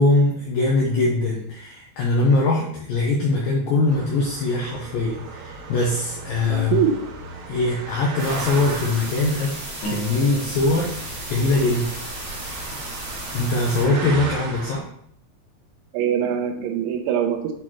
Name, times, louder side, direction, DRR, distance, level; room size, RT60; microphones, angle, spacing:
voice 1, 0.0-6.8 7.5-9.6 9.8-10.9 11.3-11.9 13.3-14.8, left 2 dB, 85° left, -3 dB, 2.0 m, -22 dB
sound 1, 3.9-14.8, right 3 dB, 65° right, 2.6 m, -36 dB
voice 2, 6.4-6.9 15.9-17.5, right 8 dB, 85° right, 4 dB, 3.2 m, -23 dB
sound 2, 8.2-13.8, right 1 dB, 45° right, 1.5 m, -35 dB
sound 3, 9.8-13.4, right 2 dB, 55° left, 2.1 m, -37 dB
8.6 x 4.2 x 3.0 m, 0.69 s
omnidirectional pair, 5.2 m